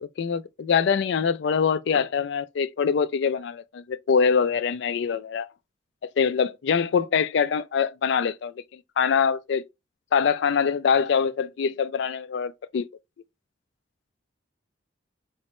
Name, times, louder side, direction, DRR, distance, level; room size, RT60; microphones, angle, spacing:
voice 1, 0.2-5.5 6.2-9.6 10.1-12.9, left 6 dB, 65° left, 0.3 m, -24 dB
4.0 x 2.2 x 2.9 m
head